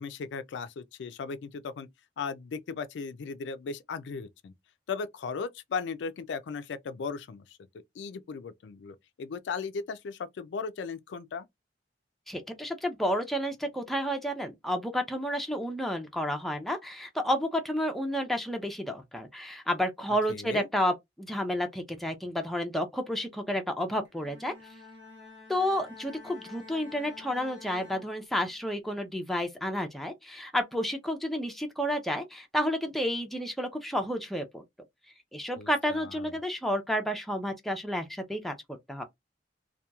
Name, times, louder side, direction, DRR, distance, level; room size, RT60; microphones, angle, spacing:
voice 1, 0.0-1.9 2.2-4.5 4.9-7.6 8.0-11.5 20.3-20.7 35.6-36.1, left 5 dB, 75° left, 0.3 m, -37 dB
voice 2, 12.3-24.5 25.5-34.6 35.3-38.5 38.9-39.0, equal, ahead, 0.4 m, -31 dB
Bowed string instrument, 24.0-28.7, left 5 dB, 80° right, 1.0 m, -50 dB
2.8 x 2.2 x 2.2 m
head